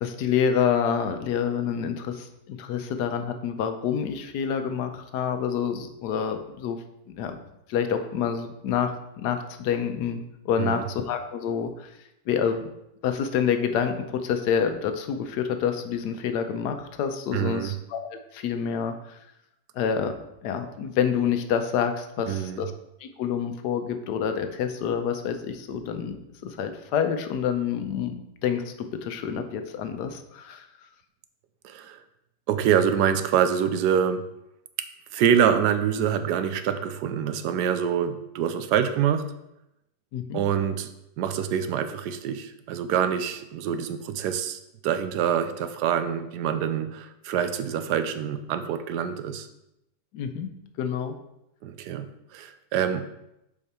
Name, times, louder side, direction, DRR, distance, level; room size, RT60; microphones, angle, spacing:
voice 1, 0.0-6.8 7.1-7.4 7.7-11.9 12.3-12.7 13.0-19.2 19.7-20.1 20.4-22.7 23.0-28.7 29.0-30.7 40.1-40.4 50.1-50.5 50.8-51.1, left 7 dB, 90° left, 7 dB, 1.3 m, -27 dB
voice 2, 17.3-17.7 22.3-22.6 31.6-32.0 32.5-34.2 35.1-39.2 40.3-40.9 41.2-49.5 51.6-52.0 52.3-53.0, right 8 dB, 85° right, 10 dB, 1.2 m, -25 dB
7.2 x 4.5 x 4.3 m, 0.85 s
omnidirectional pair, 1.7 m